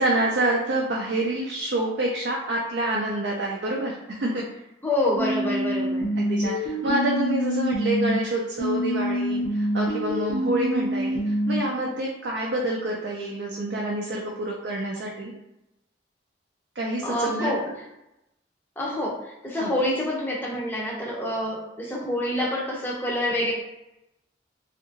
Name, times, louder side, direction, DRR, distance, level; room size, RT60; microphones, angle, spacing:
voice 1, 0.0-4.4 6.2-15.3 16.8-17.7 19.6-19.7, right 1 dB, 60° right, -2 dB, 0.4 m, -27 dB
voice 2, 4.8-6.1 17.0-17.7 18.8-23.5, left 1 dB, 10° left, -4 dB, 0.5 m, -27 dB
sound 1, 5.2-8.2 8.6-11.6, equal, 80° left, 0.6 m, -26 dB
2.7 x 2.5 x 2.6 m, 0.90 s
head